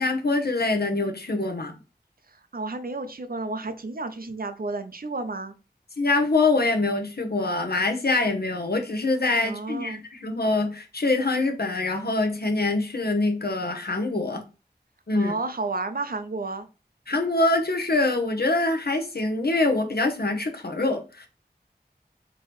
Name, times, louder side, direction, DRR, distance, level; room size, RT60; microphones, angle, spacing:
voice 1, 0.0-1.7 6.0-14.4 15.1-15.3 17.1-21.3, left 2 dB, 65° left, 0.8 m, -24 dB
voice 2, 2.3-5.5 9.4-10.0 15.1-16.7, right 3 dB, 60° right, 0.5 m, -32 dB
3.8 x 2.9 x 3.0 m
wide cardioid pair, 45°, 17 cm